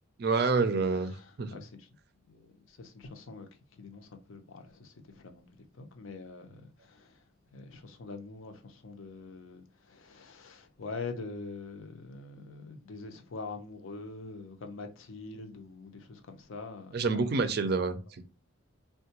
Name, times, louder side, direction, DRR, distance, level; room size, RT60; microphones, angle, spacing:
voice 1, 0.2-1.1 1.4-1.5 16.9-18.2, right 4 dB, 50° right, 0.4 m, -27 dB
voice 2, 1.1-1.9 2.2-3.5 3.8-7.2 7.5-17.2, left 3 dB, 75° left, 0.6 m, -44 dB
3.5 x 2.2 x 2.8 m
head